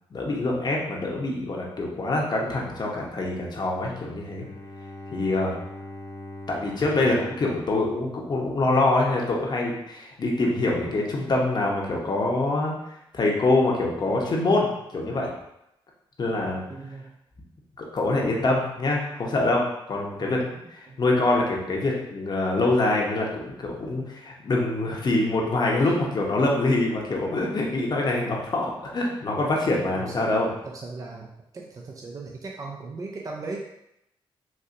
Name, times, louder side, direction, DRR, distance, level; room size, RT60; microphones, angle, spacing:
voice 1, 0.1-4.4 5.1-5.5 6.5-12.7 13.1-15.3 16.2-16.6 17.8-30.5, left 2 dB, 45° left, -1 dB, 0.9 m, -25 dB
Bowed string instrument, 4.3-9.0, left 1 dB, 80° left, 1.0 m, -42 dB
voice 2, 16.7-17.1 20.2-20.6 20.9-21.0 30.2-30.3 30.6-31.3 31.5-33.6, right 3 dB, 35° right, -1 dB, 0.5 m, -38 dB
4.1 x 2.7 x 2.5 m, 0.82 s
cardioid pair, 70°, 10 cm